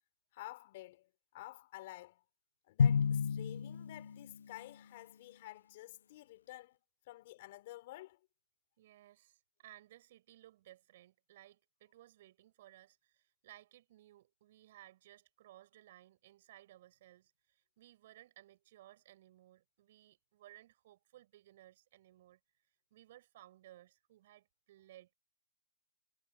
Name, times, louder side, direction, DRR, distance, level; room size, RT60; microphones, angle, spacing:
voice 1, 0.3-2.2 2.7-6.8 7.1-8.2, left 17 dB, 40° left, 4.9 m, -51 dB
Drum, 2.8-4.5, left 6 dB, 80° left, 0.4 m, -31 dB
voice 2, 8.8-25.1, right 14 dB, 45° right, 6.6 m, -60 dB
hypercardioid pair, 160°, 0 cm